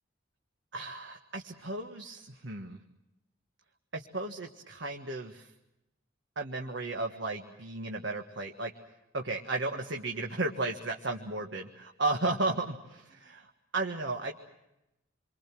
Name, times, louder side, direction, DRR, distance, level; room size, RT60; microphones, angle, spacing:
voice 1, 0.7-2.8 3.9-5.5 6.3-8.7 9.1-14.3, right 2 dB, 60° right, 3 dB, 1.6 m, -34 dB
28.0 x 24.0 x 6.1 m, 0.91 s
head